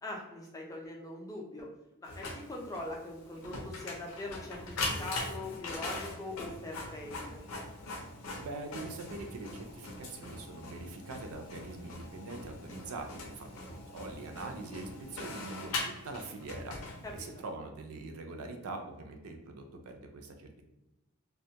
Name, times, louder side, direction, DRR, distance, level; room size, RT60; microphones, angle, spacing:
voice 1, 0.0-1.7 2.0-4.6 5.0-7.4 17.0-17.3, left 2 dB, 15° left, -1 dB, 0.4 m, -42 dB
Printer, 2.1-17.4, left 2 dB, 70° left, 0.5 m, -41 dB
voice 2, 8.3-13.1 13.4-16.7 17.1-20.6, right 3 dB, 75° right, 4 dB, 0.4 m, -43 dB
2.2 x 2.1 x 2.7 m, 0.97 s
head